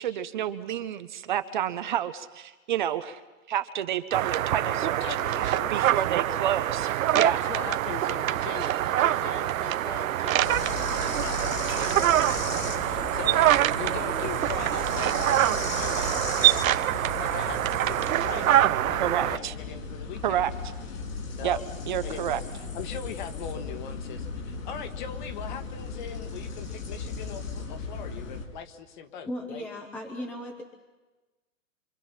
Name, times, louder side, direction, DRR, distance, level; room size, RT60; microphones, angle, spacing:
voice 1, 0.0-3.2 3.5-5.0 5.7-7.4 19.0-19.5 20.2-20.5 21.4-21.6 21.9-22.4, right 11 dB, 35° right, 11 dB, 0.8 m, -29 dB
sound 1, 4.1-19.4, right 12 dB, 90° right, 0.6 m, -25 dB
voice 2, 4.6-6.0 6.4-6.6 6.8-20.5 21.3-21.6 22.0-29.7, left 7 dB, 35° left, 9 dB, 1.6 m, -41 dB
sound 2, 6.7-16.7, right 8 dB, 70° right, 3.0 m, -42 dB
sound 3, 10.4-28.4, left 4 dB, 85° left, 6.2 m, -36 dB
voice 3, 29.3-30.6, left 1 dB, 5° left, 2 dB, 0.8 m, -36 dB
26.5 x 25.5 x 5.7 m, 1.2 s
hypercardioid pair, 165°, 40 cm